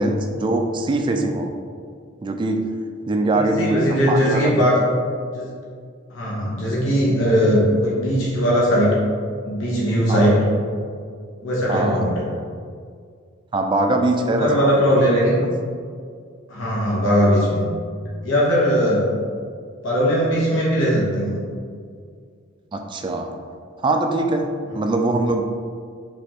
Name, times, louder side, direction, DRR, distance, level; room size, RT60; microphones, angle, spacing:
voice 1, 0.0-1.5 2.2-2.6 3.1-4.6 10.1-10.3 11.7-12.0 13.5-14.7 22.7-23.3 23.8-24.5 24.7-25.4, right 2 dB, 25° right, 4 dB, 0.3 m, -22 dB
voice 2, 3.3-4.9 5.3-5.5 6.1-9.0 9.4-10.5 11.4-12.2 14.2-15.4 16.5-17.7 18.2-19.1 19.8-21.4, equal, 65° left, -6 dB, 1.0 m, -19 dB
5.1 x 3.5 x 2.9 m, 2.1 s
head